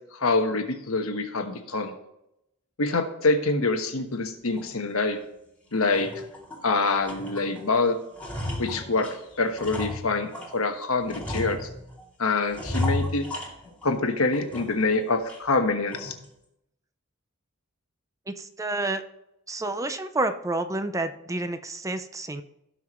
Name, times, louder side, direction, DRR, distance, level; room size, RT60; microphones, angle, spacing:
voice 1, 0.1-1.9 2.8-5.2 5.7-6.1 6.6-8.0 8.6-11.7 12.2-13.2 13.8-16.1, left 3 dB, 85° left, 5 dB, 1.3 m, -25 dB
sound 1, 4.6-4.7 5.2-5.3 5.7-6.7 7.0-7.7 7.9-10.6 11.1-12.0 12.5-14.0 14.3-14.9 15.3-15.4 15.9-16.3, left 1 dB, 5° left, 2.3 m, -34 dB
voice 2, 18.3-19.0 19.5-22.4, right 2 dB, 15° right, 9 dB, 0.5 m, -29 dB
17.0 x 5.9 x 3.1 m, 0.83 s
head